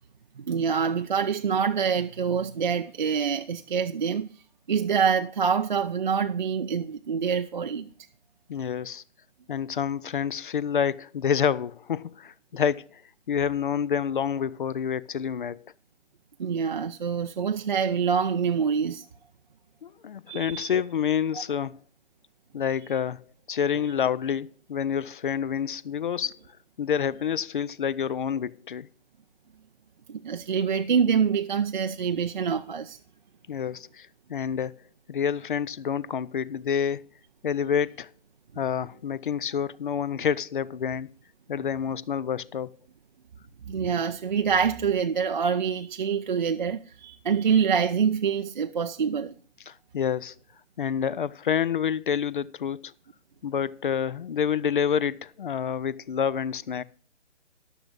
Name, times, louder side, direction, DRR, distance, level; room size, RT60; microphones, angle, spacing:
voice 1, 0.4-4.3 4.7-7.9 16.4-19.0 20.3-20.7 30.1-33.0 43.7-49.3, right 6 dB, 40° right, 0.4 m, -26 dB
voice 2, 8.5-9.0 9.5-13.0 13.3-15.7 19.8-21.8 22.5-26.4 26.8-28.9 33.5-34.7 35.1-37.0 37.4-38.1 38.6-41.1 41.5-42.7 49.7-50.3 50.8-52.9 53.4-56.8, left 8 dB, 45° left, 0.4 m, -28 dB
14.5 x 10.5 x 2.4 m
figure-of-eight pair, 145°, 36 cm